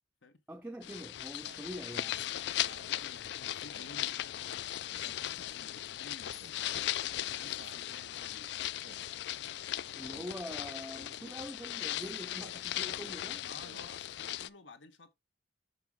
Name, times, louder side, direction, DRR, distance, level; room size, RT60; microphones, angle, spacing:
voice 1, 0.5-2.3 10.0-13.4, equal, 10° right, 0.4 m, -44 dB
sound 1, 0.8-14.5, left 13 dB, 65° left, 0.3 m, -38 dB
Speech synthesizer, 1.4-1.7 2.5-3.0 3.7-4.0 4.9-5.4 6.3-6.7 7.6-7.9 8.8-9.1 10.1-10.3 11.2-11.4 12.3-12.7 13.5-13.9, right 3 dB, 80° right, 1.0 m, -55 dB
voice 2, 2.9-8.5 13.4-15.1, left 3 dB, 85° left, 1.2 m, -55 dB
6.8 x 5.3 x 3.6 m
head